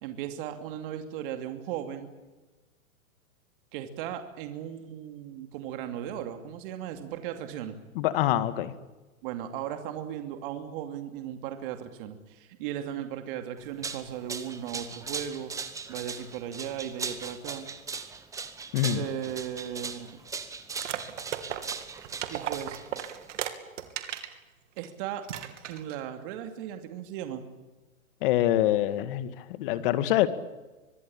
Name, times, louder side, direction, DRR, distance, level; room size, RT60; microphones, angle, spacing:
voice 1, 0.0-2.1 3.7-7.8 9.2-15.5 15.9-17.7 18.9-20.2 22.3-22.8 24.8-25.2 25.7-27.4, right 10 dB, 40° right, 7 dB, 2.8 m, -36 dB
voice 2, 8.0-8.7 18.7-19.0 28.2-30.3, left 13 dB, 40° left, 12 dB, 2.1 m, -25 dB
sound 1, 13.6-23.4, right 5 dB, 10° right, 1.3 m, -39 dB
sound 2, 20.7-24.3 24.8-24.9 25.2-26.0, right 11 dB, 60° right, 3.1 m, -36 dB
25.0 x 20.5 x 9.0 m, 1.2 s
hypercardioid pair, 150°, 41 cm